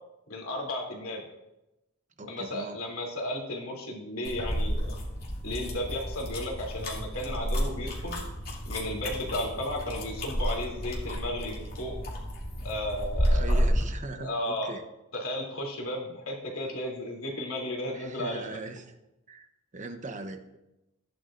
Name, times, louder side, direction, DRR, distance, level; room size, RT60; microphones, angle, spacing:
voice 1, 0.3-1.2 2.2-4.9 5.4-8.2 8.6-11.9 12.6-13.6 14.2-14.7 15.1-18.6, left 1 dB, 70° left, -1 dB, 3.1 m, -34 dB
voice 2, 2.2-2.8 13.3-14.8 17.9-18.9 19.3-19.5 19.7-20.6, right 3 dB, 35° right, 7 dB, 0.9 m, -40 dB
sound 1, 4.2-13.9, equal, 45° left, 2.7 m, -31 dB
15.5 x 10.5 x 2.6 m, 0.93 s
head